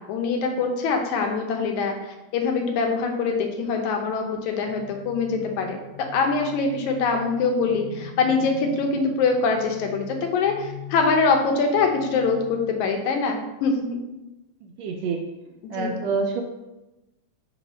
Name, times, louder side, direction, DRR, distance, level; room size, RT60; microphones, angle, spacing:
voice 1, 0.0-14.0 15.6-15.9, left 4 dB, 80° left, 3 dB, 2.1 m, -24 dB
sound 1, 4.6-13.0, left 7 dB, 40° left, 0.8 m, -42 dB
voice 2, 14.6-15.2 15.7-16.4, right 4 dB, 80° right, 3 dB, 1.6 m, -27 dB
4.9 x 3.8 x 5.1 m, 1.0 s
omnidirectional pair, 3.4 m